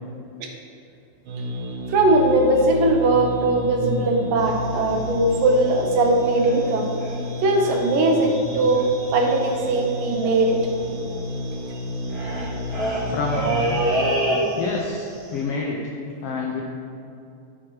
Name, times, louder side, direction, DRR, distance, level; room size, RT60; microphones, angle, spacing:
sound 1, 1.3-14.1, equal, 70° right, 1.2 m, -31 dB
voice 1, 1.9-6.9 7.4-10.7, right 2 dB, 85° right, 2 dB, 2.7 m, -20 dB
sound 2, 4.4-6.7 7.0-7.2 7.5-8.0 8.2-8.3 8.5-14.9 15.1-15.4, right 1 dB, 30° right, 3.0 m, -28 dB
voice 2, 13.1-13.5 14.6-15.9 16.2-16.6, left 3 dB, 70° left, -1 dB, 1.4 m, -27 dB
13.0 x 6.1 x 4.8 m, 2.6 s
omnidirectional pair, 3.8 m